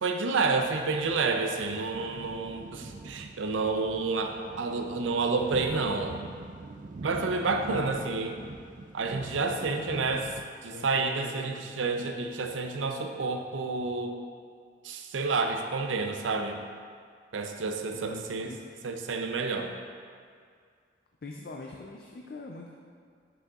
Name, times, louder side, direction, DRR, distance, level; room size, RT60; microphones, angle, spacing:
voice 1, 0.0-6.1 7.0-8.3 8.9-10.2 10.6-14.1 14.8-16.6 17.3-18.5 18.8-19.7, right 4 dB, 90° right, 5 dB, 0.5 m, -29 dB
sound 1, 0.7-10.5, right 3 dB, 45° right, 0.3 m, -44 dB
voice 2, 7.4-8.4 9.6-10.3 10.7-11.6 17.9-18.7 21.2-22.7, left 2 dB, 50° left, 0 dB, 0.4 m, -43 dB
7.9 x 6.1 x 2.4 m, 2.1 s
head